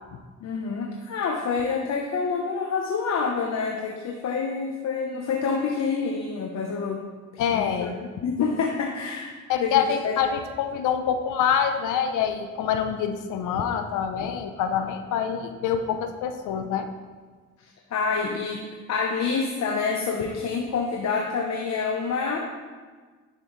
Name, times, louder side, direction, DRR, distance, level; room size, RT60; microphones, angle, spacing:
voice 1, 0.4-7.0 7.3-7.9 8.2-10.2 17.6-18.6 18.9-22.4, left 5 dB, 60° left, 1 dB, 1.0 m, -27 dB
voice 2, 7.4-7.9 9.5-16.9, left 8 dB, 85° left, 7 dB, 0.7 m, -26 dB
10.0 x 7.5 x 3.2 m, 1.4 s
cardioid pair, 90°, 30 cm